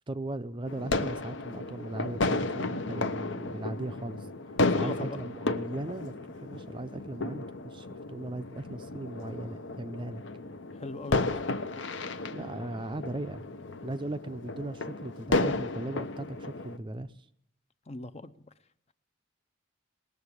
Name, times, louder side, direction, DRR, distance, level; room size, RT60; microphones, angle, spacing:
voice 1, 0.1-4.3 4.7-6.1 6.4-10.2 12.3-13.4 13.8-17.3, right 2 dB, 25° right, 11 dB, 0.5 m, -38 dB
sound 1, 0.7-16.8, left 2 dB, 65° left, 0.8 m, -33 dB
voice 2, 4.6-5.2 10.7-11.4 17.9-18.3, left 2 dB, 30° left, 12 dB, 0.6 m, -39 dB
19.0 x 7.0 x 9.7 m, 0.73 s
head